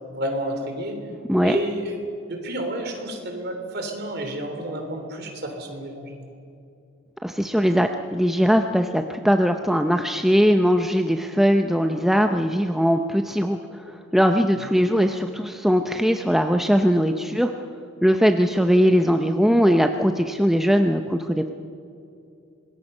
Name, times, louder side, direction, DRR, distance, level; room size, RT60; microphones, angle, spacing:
voice 1, 0.1-1.0 1.4-1.9 2.3-6.3 14.5-14.7, right 1 dB, 45° right, 4 dB, 3.3 m, -30 dB
voice 2, 7.2-17.5 18.0-21.5, equal, ahead, 5 dB, 0.5 m, -20 dB
26.0 x 20.0 x 5.5 m, 2.6 s
head